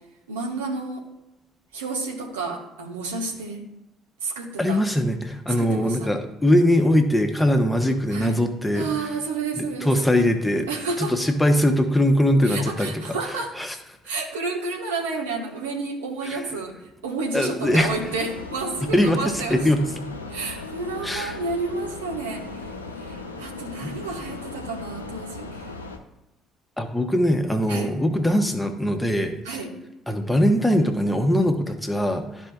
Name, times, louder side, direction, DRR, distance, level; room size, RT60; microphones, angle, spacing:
voice 1, 0.3-1.1 1.7-3.6 4.2-4.8 5.5-6.1 8.1-8.4 8.7-10.1 10.7-11.1 12.4-13.5 14.0-16.8 17.0-19.7 20.3-25.6 27.7-27.9 29.4-29.7, right 3 dB, 75° right, 0 dB, 1.3 m, -30 dB
voice 2, 4.6-8.9 9.6-10.7 11.0-13.0 13.6-13.7 16.3-16.4 17.3-17.9 18.9-19.8 21.0-21.4 26.8-29.4 30.1-32.5, left 1 dB, 5° left, 5 dB, 1.1 m, -21 dB
sound 1, 17.6-26.0, left 3 dB, 85° left, 0.6 m, -37 dB
13.0 x 4.5 x 2.3 m, 0.94 s
figure-of-eight pair, 50°, 0 cm